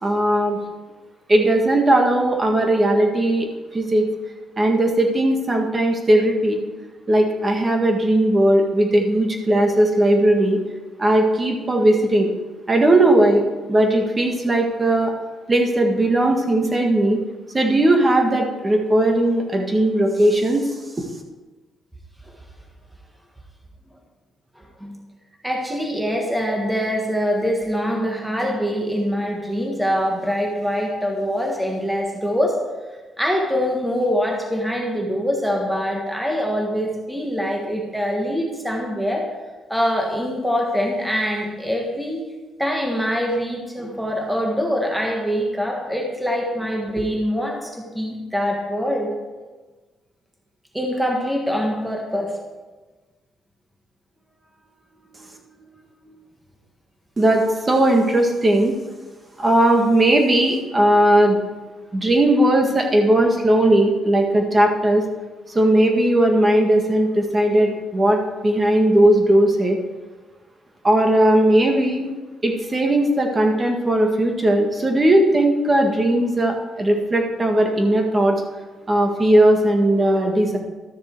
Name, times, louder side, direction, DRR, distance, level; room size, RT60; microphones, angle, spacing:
voice 1, 0.0-0.6 1.3-3.5 3.7-4.1 4.6-6.6 7.1-10.6 11.0-12.3 12.7-13.4 13.7-15.1 15.5-17.2 17.5-20.7 57.2-58.7 59.4-61.4 61.9-65.0 65.5-69.8 70.8-72.1 72.4-78.4 78.9-80.6, right 1 dB, 25° right, 2 dB, 1.7 m, -18 dB
voice 2, 24.6-25.0 25.4-32.6 33.2-39.2 39.7-42.2 42.6-49.1 50.7-52.4 55.1-55.3 55.6-55.7 56.1-56.2, equal, 5° right, 0 dB, 1.6 m, -24 dB
13.0 x 6.8 x 4.6 m, 1.3 s
cardioid pair, 90°, 0 cm